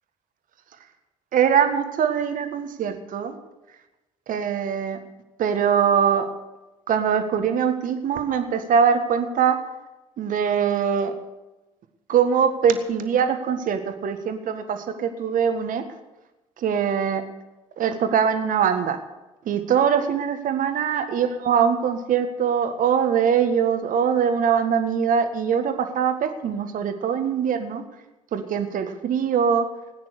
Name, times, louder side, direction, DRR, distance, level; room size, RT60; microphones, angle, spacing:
voice 1, 1.3-3.3 4.3-5.0 5.4-6.3 6.9-9.6 10.2-11.1 12.1-15.8 16.6-17.2 17.8-19.0 19.4-27.8 28.3-29.7, right 7 dB, 55° right, 7 dB, 1.7 m, -22 dB
19.0 x 9.4 x 6.7 m, 1.0 s
hypercardioid pair, 50°, 17 cm